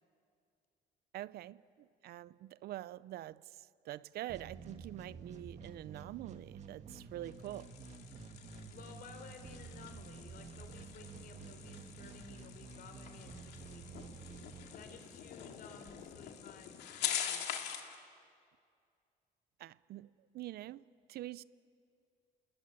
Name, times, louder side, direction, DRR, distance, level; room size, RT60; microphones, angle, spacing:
voice 1, 1.1-7.7 19.6-21.4, right 14 dB, 70° right, 0.6 m, -46 dB
sound 1, 4.3-15.2, right 5 dB, 40° right, 2.2 m, -51 dB
sound 2, 7.3-18.0, left 9 dB, 80° left, 2.4 m, -44 dB
voice 2, 8.7-13.8 14.7-17.4, left 4 dB, 60° left, 3.7 m, -55 dB
28.0 x 20.0 x 9.9 m
cardioid pair, 110°, 17 cm